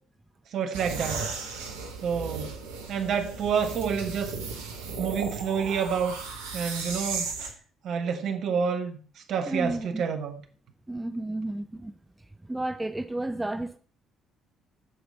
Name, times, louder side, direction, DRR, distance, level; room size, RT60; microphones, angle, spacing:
voice 1, 0.5-1.2 1.6-1.7 2.0-2.5 2.9-4.3 5.0-6.2 6.5-7.3 7.8-9.0 9.3-10.4, right 6 dB, 50° right, 1.1 m, -28 dB
sound 1, 0.7-7.5, right 4 dB, 70° right, 1.1 m, -35 dB
voice 2, 9.5-10.0 10.9-13.8, right 2 dB, 10° right, 0.5 m, -32 dB
14.0 x 5.0 x 4.1 m
figure-of-eight pair, 50°, 0 cm